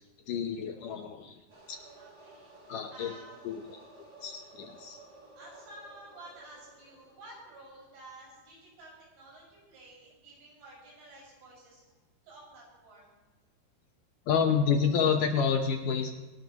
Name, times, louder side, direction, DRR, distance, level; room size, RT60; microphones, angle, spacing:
voice 1, 0.3-1.4 1.7-1.8 2.7-3.1 3.4-3.8 4.2-5.0 14.3-16.1, left 6 dB, 75° left, 4 dB, 2.0 m, -29 dB
sound 1, 1.5-8.1, right 2 dB, 30° right, 4.9 m, -54 dB
voice 2, 2.0-3.6 5.4-11.8 12.2-13.1, right 1 dB, 85° right, -4 dB, 8.1 m, -52 dB
26.0 x 12.0 x 3.0 m, 1.2 s
omnidirectional pair, 4.8 m